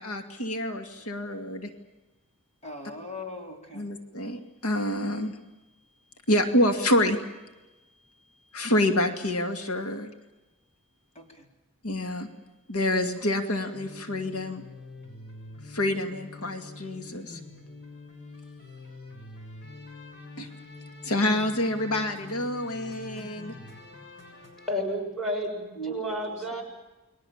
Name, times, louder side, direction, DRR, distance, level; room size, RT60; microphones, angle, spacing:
voice 1, 0.0-1.7 3.7-5.4 6.3-7.2 8.5-10.1 11.8-12.3 12.7-14.6 15.6-17.4 20.4-20.5 21.0-23.5, left 1 dB, 80° left, 2.4 m, -27 dB
voice 2, 2.6-3.9 11.1-11.5 12.3-12.4 25.8-26.6, equal, 30° left, 4.5 m, -39 dB
sound 1, 13.7-24.7, left 2 dB, 55° left, 6.8 m, -45 dB
voice 3, 24.7-26.6, equal, ahead, 6.5 m, -31 dB
29.5 x 22.0 x 7.3 m
head